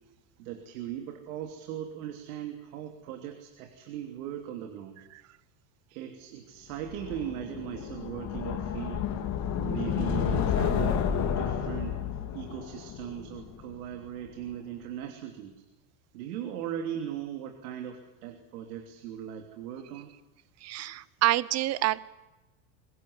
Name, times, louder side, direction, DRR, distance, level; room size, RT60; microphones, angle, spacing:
voice 1, 0.4-5.0 5.9-9.1 9.6-12.0 12.3-15.6 16.1-20.1 21.0-21.1, right 10 dB, 85° right, 3 dB, 3.2 m, -38 dB
sound 1, 6.9-13.9, left 8 dB, 40° left, 3.0 m, -31 dB
voice 2, 20.6-22.0, right 15 dB, 35° right, 17 dB, 0.9 m, -27 dB
24.0 x 19.5 x 9.8 m, 1.1 s
supercardioid pair, 150°, 43 cm